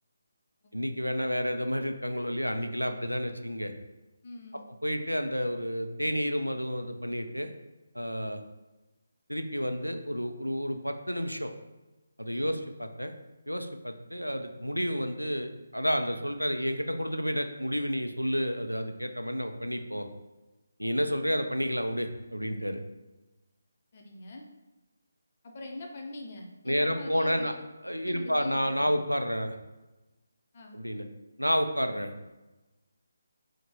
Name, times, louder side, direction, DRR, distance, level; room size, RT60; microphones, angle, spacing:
voice 1, 0.7-3.7 4.8-7.5 7.9-8.4 9.3-11.5 12.2-13.1 13.5-20.1 20.8-22.8 26.7-27.5 27.8-29.6 30.7-31.0 31.4-32.1, equal, 90° right, 6 dB, 0.3 m, -30 dB
voice 2, 4.2-4.7 12.3-12.5 23.9-24.5 25.4-27.5 28.1-29.0 30.5-30.8, left 2 dB, 35° left, 1 dB, 0.5 m, -43 dB
3.0 x 2.1 x 4.2 m, 1.1 s
figure-of-eight pair, 150°, 0 cm